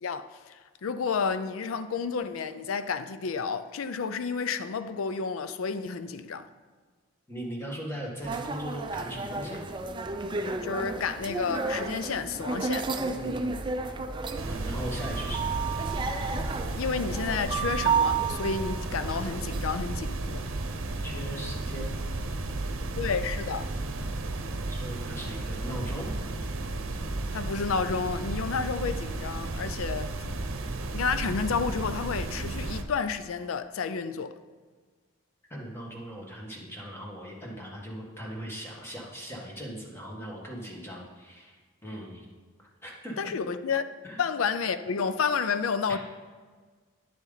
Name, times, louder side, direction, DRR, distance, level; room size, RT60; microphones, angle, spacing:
voice 1, 0.0-6.5 10.6-12.9 16.7-20.5 23.0-23.7 27.3-30.1 30.9-34.3 43.2-43.9 44.2-46.0, left 5 dB, 90° left, 0.5 m, -30 dB
voice 2, 7.3-9.6 13.0-13.6 14.4-15.6 21.0-22.0 24.7-26.3 35.5-42.3 42.6-43.3 44.0-44.2 45.9-46.0, equal, 10° left, 1.6 m, -39 dB
sound 1, 8.2-19.8, right 4 dB, 25° right, 0.4 m, -32 dB
velvet red noise, 14.4-32.8, right 2 dB, 80° right, 0.8 m, -33 dB
10.0 x 7.2 x 4.0 m
head